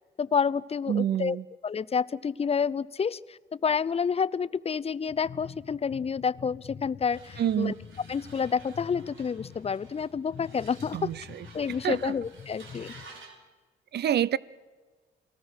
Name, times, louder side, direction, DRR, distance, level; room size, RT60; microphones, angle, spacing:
voice 1, 0.2-1.4 1.6-7.7 8.1-11.1 11.5-12.9, left 6 dB, 30° left, 0.6 m, -29 dB
voice 2, 0.9-1.4 7.4-7.8 10.9-11.5 11.8-12.1 13.9-14.4, right 10 dB, 55° right, 0.7 m, -27 dB
sound 1, 5.1-13.1, left 7 dB, 45° left, 1.1 m, -47 dB
sound 2, 7.1-13.4, right 3 dB, 75° right, 4.3 m, -52 dB
29.0 x 19.5 x 6.5 m
cardioid pair, 90°, 20 cm